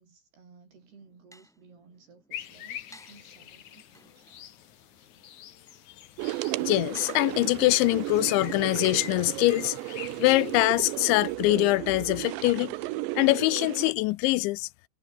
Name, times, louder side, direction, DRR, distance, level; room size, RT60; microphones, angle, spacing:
voice 1, 0.0-4.4 4.9-5.1, right 5 dB, 60° right, 8.2 m, -57 dB
sound 1, 0.7-12.3, equal, ahead, 3.8 m, -58 dB
sound 2, 2.3-11.4, left 10 dB, 55° left, 2.3 m, -45 dB
sound 3, 6.2-13.9, right 19 dB, 85° right, 3.0 m, -34 dB
voice 2, 6.6-9.8 10.2-12.7 13.2-14.7, left 21 dB, 90° left, 3.0 m, -24 dB
omnidirectional pair, 5.3 m